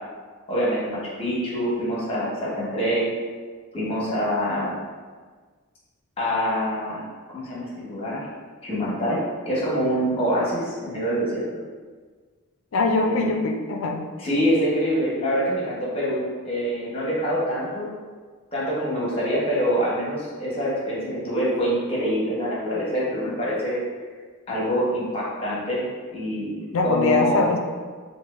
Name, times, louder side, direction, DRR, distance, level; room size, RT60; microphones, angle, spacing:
voice 1, 0.5-3.1 3.7-4.8 6.2-7.0 7.3-8.2 8.6-9.2 9.5-11.4 13.0-13.4 14.2-17.9 18.5-23.8 24.5-25.8 26.1-27.5, equal, 25° left, -6 dB, 0.9 m, -25 dB
voice 2, 12.7-14.0 26.7-27.6, left 3 dB, 60° left, 3 dB, 0.4 m, -22 dB
4.3 x 2.1 x 2.4 m, 1.5 s
head